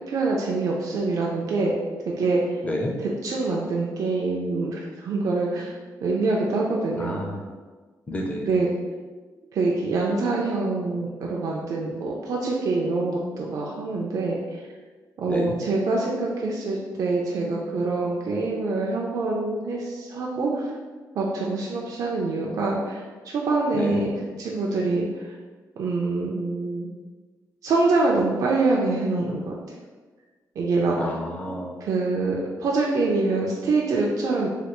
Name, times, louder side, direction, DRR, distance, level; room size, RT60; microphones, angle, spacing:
voice 1, 0.1-1.7 2.1-2.4 3.0-5.7 6.0-7.2 8.4-8.7 9.5-14.6 15.2-20.7 21.2-25.1 25.8-26.9 27.6-29.5 30.6-31.1 31.8-34.5, right 3 dB, 60° right, -2 dB, 0.4 m, -25 dB
voice 2, 7.0-7.4 8.1-8.5 15.3-15.6 23.7-24.0 31.0-31.7, left 1 dB, 20° left, 0 dB, 0.4 m, -29 dB
3.2 x 2.2 x 2.9 m, 1.4 s
wide cardioid pair, 145°, 7 cm